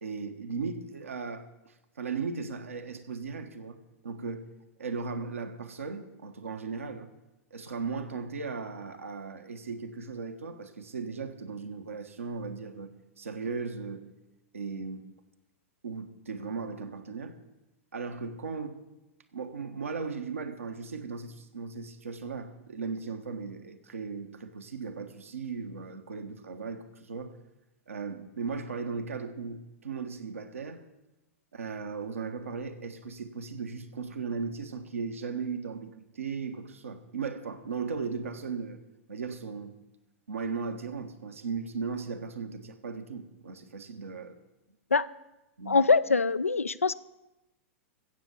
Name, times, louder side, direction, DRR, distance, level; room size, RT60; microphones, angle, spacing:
voice 1, 0.0-4.5 4.8-7.1 7.5-14.1 14.5-15.1 15.8-17.4 17.9-18.8 19.3-27.3 27.9-30.8 31.5-38.8 39.1-39.8 40.3-44.3 45.6-45.8, right 5 dB, 80° right, 6 dB, 1.4 m, -37 dB
voice 2, 45.7-46.9, left 4 dB, 90° left, 16 dB, 0.5 m, -23 dB
15.5 x 7.3 x 6.9 m, 0.99 s
figure-of-eight pair, 100°, 7 cm